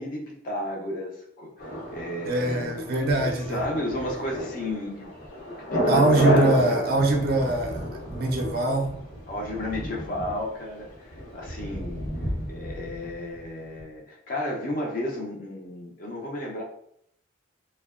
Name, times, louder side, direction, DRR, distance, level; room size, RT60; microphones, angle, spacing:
voice 1, 0.0-2.9 3.2-5.1 5.4-6.6 9.3-10.9 11.3-12.1 12.5-16.6, left 1 dB, 45° left, -1 dB, 0.4 m, -33 dB
Thunder, 1.6-13.5 13.8-13.9, equal, 80° left, 1.0 m, -31 dB
voice 2, 2.3-3.6 5.9-8.9, right 2 dB, 50° right, 2 dB, 0.4 m, -23 dB
2.6 x 2.1 x 2.3 m, 0.71 s
head